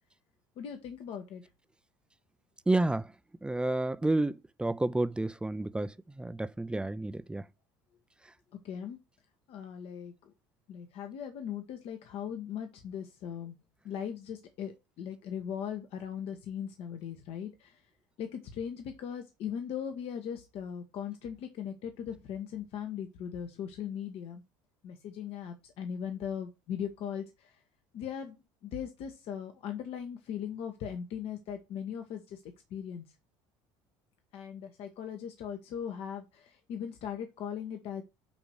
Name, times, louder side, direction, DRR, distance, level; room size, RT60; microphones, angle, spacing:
voice 1, 0.6-1.4 8.6-9.0 9.5-10.3 10.7-13.5 13.8-17.8 18.2-24.4 24.8-27.6 27.9-28.4 28.6-33.0 34.3-38.0, left 8 dB, 60° left, 1.3 m, -39 dB
voice 2, 2.7-3.1 3.4-7.4, right 2 dB, 10° right, 0.6 m, -30 dB
8.7 x 3.0 x 6.4 m
supercardioid pair, 85°, 11 cm